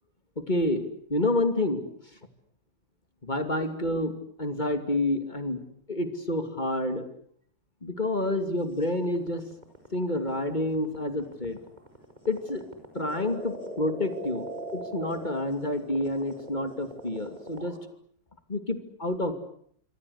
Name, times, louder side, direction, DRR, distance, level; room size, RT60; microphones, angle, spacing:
voice 1, 0.4-1.8 3.2-4.1 4.4-5.6 5.9-7.0 7.8-9.4 9.9-11.6 12.3-12.6 12.9-14.5 14.7-17.8 18.5-19.3, left 1 dB, 25° left, 8 dB, 2.8 m, -28 dB
sound 1, 8.8-17.8, right 1 dB, 20° right, 5.2 m, -40 dB
26.5 x 24.5 x 8.3 m, 0.66 s
omnidirectional pair, 2.1 m